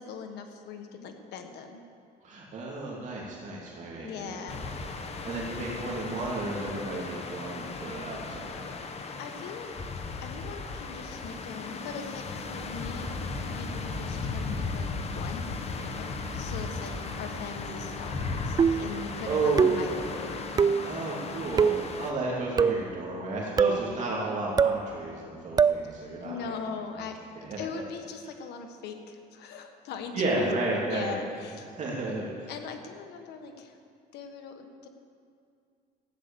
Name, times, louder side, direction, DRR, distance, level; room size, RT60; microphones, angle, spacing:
voice 1, 0.0-1.8 4.0-4.6 9.2-9.7 10.0-13.2 13.4-14.9 15.1-15.5 15.8-20.4 25.8-27.2 27.6-30.5 30.8-31.7 32.5-33.8 34.1-34.9, left 6 dB, 80° left, 5 dB, 1.4 m, -41 dB
voice 2, 2.2-4.5 5.2-8.8 19.2-20.2 20.8-26.5 27.4-27.8 30.1-31.2 31.8-32.5, right 2 dB, 45° right, -4 dB, 2.7 m, -32 dB
sound 1, 4.5-22.1, left 4 dB, 40° left, 1.2 m, -36 dB
sound 2, 11.4-21.4, right 1 dB, 60° left, 4.0 m, -46 dB
sound 3, 18.6-19.0 19.6-20.0 20.6-20.9 21.6-21.9 22.6-22.9 23.6-23.9 24.6-24.8 25.6-25.8, right 6 dB, 25° right, 0.3 m, -23 dB
15.0 x 9.7 x 7.0 m, 2.4 s
cardioid pair, 110°, 17 cm